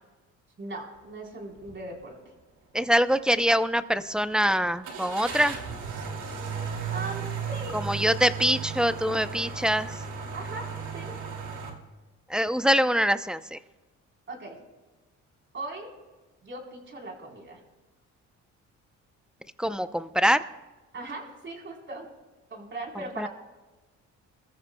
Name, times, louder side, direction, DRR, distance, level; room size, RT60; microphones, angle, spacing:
voice 1, 0.6-2.2 6.9-7.2 7.5-7.8 10.3-10.7 10.9-11.1 14.3-14.6 15.5-15.9 16.4-17.6 20.9-22.1 22.5-23.3, right 2 dB, 40° right, 0 dB, 3.8 m, -38 dB
sound 1, 1.6-1.8 2.3-2.4 4.8-11.7, right 6 dB, 75° right, 2.4 m, -35 dB
voice 2, 2.7-5.6 7.7-9.9 12.3-13.6 19.6-20.4 23.2-23.3, equal, 5° right, 12 dB, 0.5 m, -24 dB
24.5 x 14.0 x 2.2 m, 1.2 s
cardioid pair, 90°, 30 cm